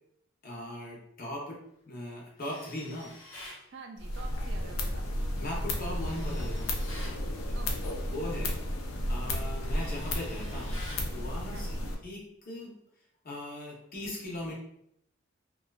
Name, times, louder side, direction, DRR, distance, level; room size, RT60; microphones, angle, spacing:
voice 1, 0.4-3.2 5.4-7.1 7.4-7.6 8.1-8.6 9.1-10.8 11.1-11.8 12.0-12.8 13.2-14.5, left 1 dB, 45° left, -2 dB, 0.6 m, -39 dB
Tools, 2.4-3.6 5.8-7.2 8.7-8.9 9.3-11.1, left 1 dB, 65° left, 0.9 m, -48 dB
voice 2, 3.7-5.2 7.5-8.2 11.5-11.9, right 4 dB, 55° right, 3 dB, 0.3 m, -48 dB
sound 1, 4.0-12.0, left 1 dB, 85° left, 0.4 m, -33 dB
2.5 x 2.2 x 2.2 m, 0.75 s
head